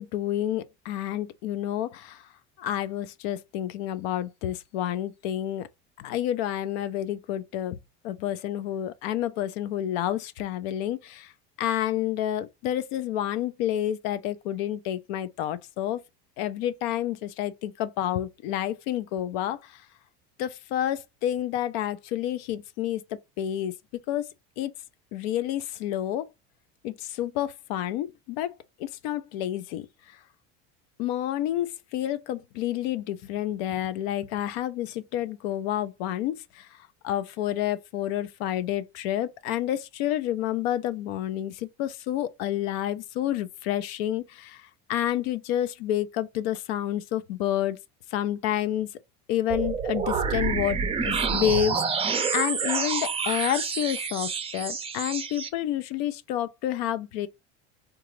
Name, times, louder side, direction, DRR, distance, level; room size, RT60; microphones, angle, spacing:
voice 1, 0.0-2.2 2.6-5.7 6.0-7.8 8.0-11.3 11.6-16.0 16.4-19.6 20.4-23.0 23.4-23.7 24.1-24.3 24.6-24.7 25.1-26.3 26.8-28.5 28.8-29.9 31.0-36.6 37.0-44.6 44.9-47.8 48.1-48.9 49.3-57.3, left 12 dB, 80° left, 0.5 m, -29 dB
sound 1, 49.5-55.5, right 6 dB, 20° right, 0.5 m, -28 dB
3.8 x 2.4 x 3.0 m
supercardioid pair, 130°, 30 cm